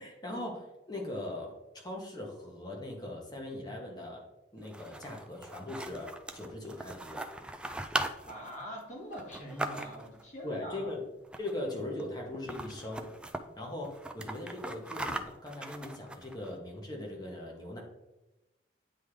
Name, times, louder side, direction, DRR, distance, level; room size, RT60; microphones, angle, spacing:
voice 1, 0.0-1.5 1.8-4.2 4.5-7.2 10.4-11.0 11.4-13.1 13.6-17.8, left 1 dB, 25° left, 0 dB, 1.3 m, -40 dB
sound 1, 4.6-10.2 11.2-11.7 12.0-12.1 12.3-13.4 13.8-16.5, right 1 dB, 5° right, 0.3 m, -39 dB
voice 2, 8.2-10.9, equal, 45° left, -2 dB, 1.7 m, -43 dB
9.2 x 3.7 x 3.3 m, 1.0 s
head